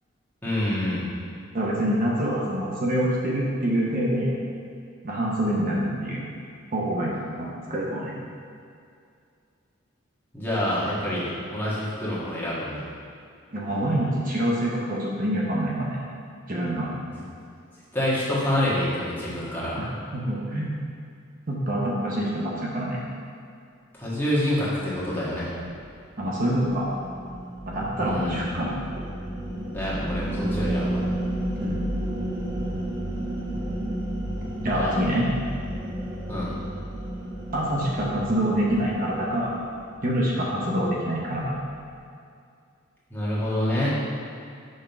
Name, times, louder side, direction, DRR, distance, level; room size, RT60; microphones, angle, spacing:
voice 1, 0.4-1.0 10.3-12.8 17.2-17.3 17.9-19.8 23.9-25.5 28.0-28.5 29.7-31.1 34.7-34.9 36.3-36.5 43.1-44.0, left 1 dB, 10° left, -9 dB, 1.5 m, -27 dB
voice 2, 1.5-4.3 5.0-6.3 6.7-8.1 13.5-16.0 16.5-16.9 19.8-19.9 20.1-20.8 21.5-23.0 26.2-26.9 27.6-28.8 31.6-31.9 34.6-35.3 37.5-39.5 40.0-41.5, right 1 dB, 45° right, -4 dB, 0.8 m, -26 dB
sound 1, 25.7-40.1, right 1 dB, 20° right, 0.9 m, -32 dB
5.4 x 3.7 x 5.8 m, 2.3 s
head